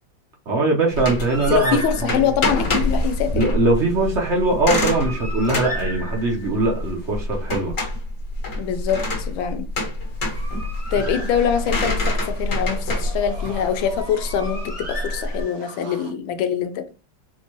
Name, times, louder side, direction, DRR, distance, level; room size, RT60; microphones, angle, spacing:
voice 1, 0.5-1.8 2.0-2.2 3.3-7.7, right 2 dB, 60° right, 0.7 m, -21 dB
sound 1, 0.9-15.4, left 2 dB, 45° left, 1.4 m, -26 dB
Bird, 1.3-2.4 4.5-6.6 10.0-11.9 13.9-15.8, right 1 dB, 15° right, 0.5 m, -35 dB
voice 2, 1.4-3.6 8.6-9.7 10.9-16.9, left 8 dB, 90° left, 1.4 m, -24 dB
sound 2, 11.0-16.1, right 3 dB, 85° right, 2.3 m, -41 dB
4.4 x 2.2 x 2.9 m
omnidirectional pair, 2.1 m